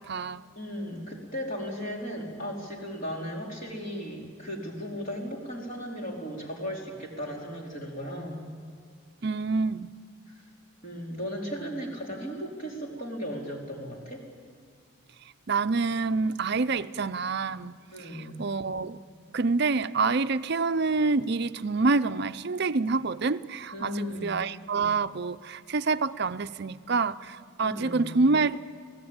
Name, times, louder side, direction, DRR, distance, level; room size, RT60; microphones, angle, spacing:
voice 1, 0.0-0.4 9.2-9.9 15.5-17.8 18.4-19.0 19.3-28.6, right 3 dB, 50° right, 13 dB, 0.5 m, -27 dB
voice 2, 0.6-8.5 10.8-14.2 17.9-18.4 23.7-24.4 27.6-28.1, equal, 35° left, -1 dB, 4.1 m, -36 dB
28.0 x 17.5 x 8.8 m, 2.1 s
head